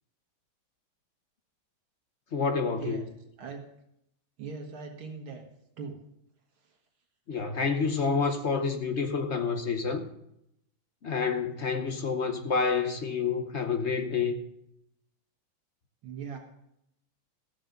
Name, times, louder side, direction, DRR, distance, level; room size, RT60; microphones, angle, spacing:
voice 1, 2.3-3.0 7.3-10.0 11.0-14.4, left 5 dB, 50° left, 0.8 m, -28 dB
voice 2, 4.4-5.4 5.8-6.0 16.0-16.4, right 5 dB, 75° right, 2.2 m, -39 dB
14.5 x 7.4 x 6.6 m
omnidirectional pair, 2.3 m